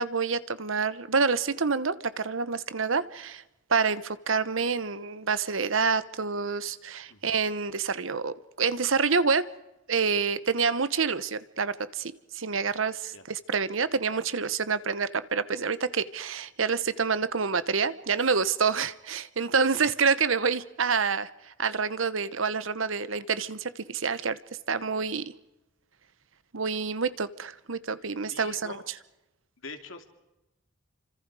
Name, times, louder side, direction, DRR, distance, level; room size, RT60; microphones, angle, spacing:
voice 1, 0.0-3.4 3.7-9.5 9.9-21.3 21.6-24.4 24.7-25.2 26.5-28.8, right 5 dB, 75° right, 15 dB, 1.0 m, -27 dB
voice 2, 28.3-28.8 29.6-30.0, left 3 dB, 75° left, 6 dB, 2.9 m, -44 dB
29.0 x 26.0 x 4.9 m, 0.95 s
head